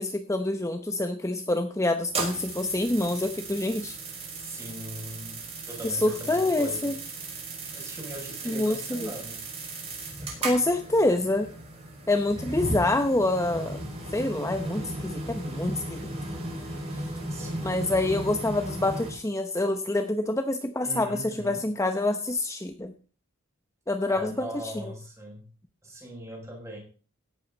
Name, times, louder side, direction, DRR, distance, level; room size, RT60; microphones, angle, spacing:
voice 1, 0.0-4.0 5.8-7.0 8.4-9.1 10.4-11.5 12.1-13.8 14.1-16.0 17.6-22.9 23.9-24.9, left 2 dB, 15° left, 7 dB, 0.9 m, -26 dB
sound 1, 2.0-19.1, right 2 dB, 30° right, 5.6 m, -36 dB
voice 2, 4.3-5.4 5.7-6.9 7.7-9.4 17.3-17.7 20.8-21.6 24.1-25.4 25.8-26.8, right 1 dB, 15° right, -1 dB, 6.7 m, -40 dB
16.5 x 11.5 x 4.0 m, 0.39 s
head